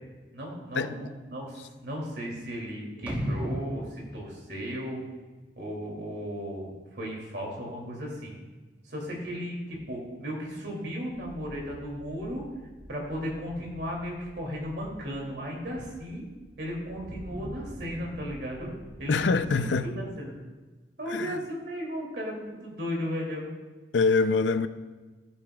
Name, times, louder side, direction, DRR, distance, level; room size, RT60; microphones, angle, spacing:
voice 1, 0.3-5.0 5.6-6.7 6.9-8.4 8.8-12.4 12.9-16.2 16.6-18.7 19.0-20.3 21.0-23.5, equal, 70° right, 2.6 m, -35 dB
sound 1, 3.1-5.2 5.6-5.7, equal, 10° right, 1.1 m, -34 dB
sound 2, 11.1-19.9, equal, 45° right, 1.7 m, -47 dB
voice 2, 19.1-20.0 21.1-21.4 23.9-24.7, left 4 dB, 90° left, 0.5 m, -25 dB
14.0 x 8.1 x 2.3 m
head